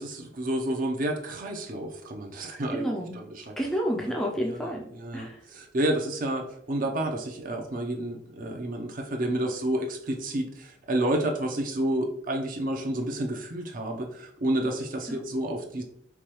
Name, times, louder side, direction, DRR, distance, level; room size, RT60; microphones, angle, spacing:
voice 1, 0.0-2.8 3.5-3.6 4.4-4.6 4.9-15.8, right 1 dB, 45° right, 2 dB, 0.6 m, -30 dB
voice 2, 2.7-3.2 3.6-4.8 5.1-5.4 15.1-15.2, equal, ahead, -1 dB, 0.4 m, -30 dB
4.7 x 2.3 x 2.9 m, 0.68 s
head